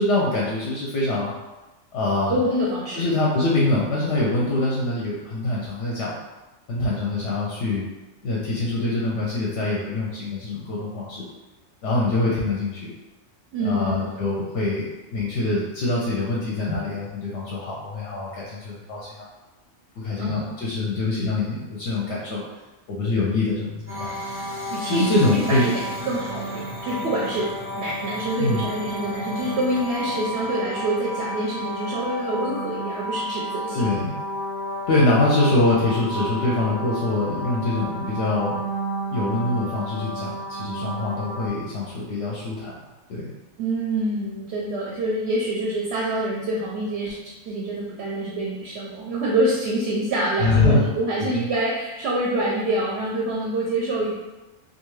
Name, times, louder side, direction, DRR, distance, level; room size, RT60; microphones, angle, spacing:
voice 1, 0.0-1.3 1.9-2.4 2.9-6.2 6.7-7.8 8.2-11.3 11.8-12.9 13.6-19.3 20.0-22.4 22.9-24.1 24.9-25.7 28.4-28.6 33.7-34.2 34.9-38.6 39.1-42.7 43.1-43.3 50.4-50.9 51.2-51.5, left 2 dB, 65° left, -4 dB, 0.8 m, -24 dB
voice 2, 2.3-3.0 13.5-14.4 16.7-16.8 20.2-20.5 24.7-33.9 43.6-47.2 47.5-54.1, right 1 dB, 65° right, -4 dB, 0.7 m, -26 dB
sound 1, 23.9-41.5, equal, 15° right, 0.6 m, -31 dB
2.5 x 2.4 x 3.1 m, 1.1 s
omnidirectional pair, 1.4 m